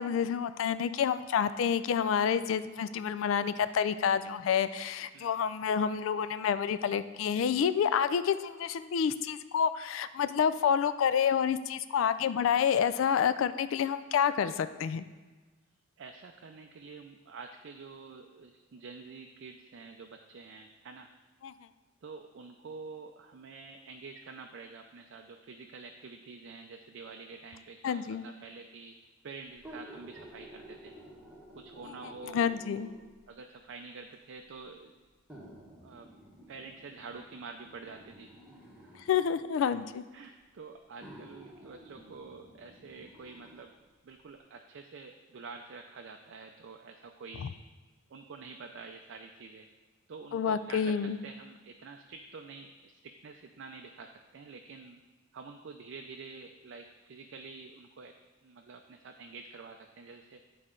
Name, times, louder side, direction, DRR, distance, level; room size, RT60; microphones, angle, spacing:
voice 1, 0.0-15.0 21.4-21.5 27.8-28.2 32.3-32.9 39.1-40.0 50.3-51.2, left 7 dB, 70° left, 13 dB, 0.3 m, -28 dB
voice 2, 16.0-21.1 22.0-28.9 29.2-30.9 31.5-32.4 33.3-34.9 35.8-36.1 36.5-38.3 38.8-39.1 39.6-39.7 40.1-43.7 44.0-47.6 48.1-49.7 50.1-50.9 51.2-55.0 55.3-58.1 58.4-60.4, right 4 dB, 65° right, 4 dB, 0.4 m, -47 dB
sound 1, 29.5-33.2 34.1-34.2 35.3-39.2 40.2-40.3 41.0-43.7 44.1-44.2, equal, 5° right, 1.3 m, -52 dB
9.8 x 4.2 x 3.7 m, 1.3 s
head